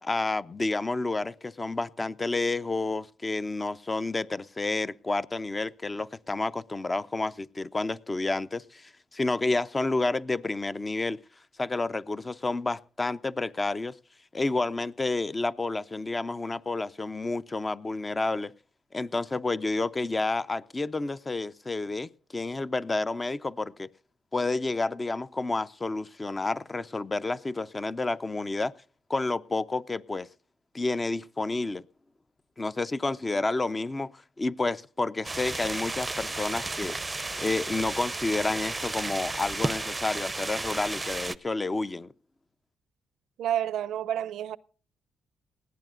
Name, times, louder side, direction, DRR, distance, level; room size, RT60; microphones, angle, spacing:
voice 1, 0.0-11.2 11.6-14.0 14.3-18.5 18.9-23.9 24.3-28.7 29.1-30.3 30.7-31.8 32.6-37.0 37.4-42.1, left 2 dB, 25° left, 0.5 m, -30 dB
sound 1, 35.2-41.4, right 2 dB, 20° right, 0.6 m, -33 dB
voice 2, 43.4-44.6, right 11 dB, 75° right, 0.5 m, -29 dB
19.5 x 14.5 x 2.5 m
cardioid pair, 90°, 0 cm